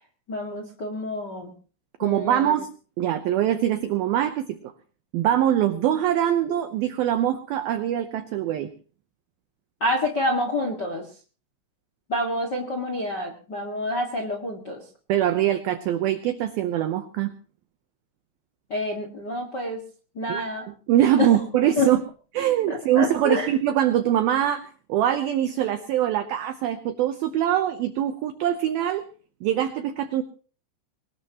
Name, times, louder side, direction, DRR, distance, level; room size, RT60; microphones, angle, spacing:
voice 1, 0.3-1.5 2.0-2.5 9.8-11.0 12.1-14.8 18.7-19.8 20.1-20.7 21.2-21.3 21.8-21.9 22.7-23.5, left 1 dB, 55° left, 2 dB, 1.1 m, -27 dB
voice 2, 2.0-2.7 3.0-4.7 5.1-8.7 15.1-17.3 20.3-22.0 22.3-29.1 29.4-30.2, right 11 dB, 90° right, 9 dB, 2.1 m, -23 dB
22.5 x 19.0 x 3.0 m, 0.39 s
omnidirectional pair, 5.6 m